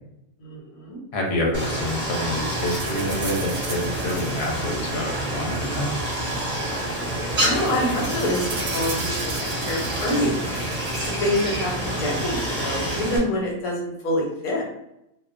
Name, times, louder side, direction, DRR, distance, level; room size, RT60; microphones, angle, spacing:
voice 1, 0.4-1.0 7.4-10.6 11.2-14.7, left 1 dB, 90° left, -1 dB, 1.2 m, -26 dB
voice 2, 1.1-6.0, left 1 dB, 55° left, -1 dB, 0.9 m, -27 dB
Stream, 1.5-13.2, right 1 dB, 35° right, 0.7 m, -27 dB
sound 1, 2.4-5.6 6.4-6.5 6.7-7.0 7.2-11.1, right 4 dB, 70° right, 0.8 m, -38 dB
2.4 x 2.2 x 2.4 m, 0.84 s
omnidirectional pair, 1.5 m